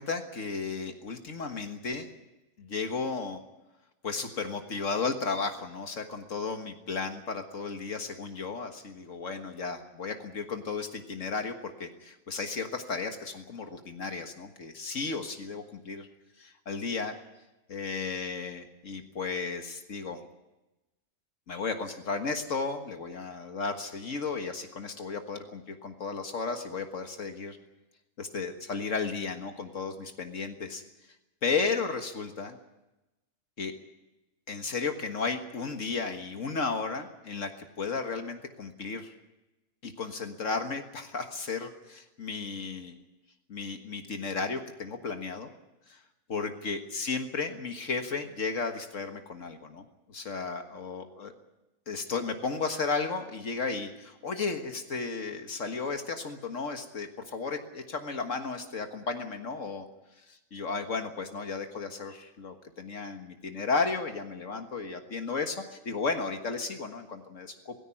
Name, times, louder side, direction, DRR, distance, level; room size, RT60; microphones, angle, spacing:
voice 1, 0.0-2.1 2.6-3.4 4.0-16.1 16.4-17.2 17.7-20.2 21.5-27.6 28.2-30.8 31.4-32.6 33.6-33.7 34.5-39.1 39.8-43.0 43.5-45.5 45.9-46.0 46.3-51.3 51.9-59.9 60.3-67.7, left 4 dB, 75° left, 5 dB, 1.9 m, -34 dB
18.5 x 16.5 x 9.9 m, 1.0 s
omnidirectional pair, 1.3 m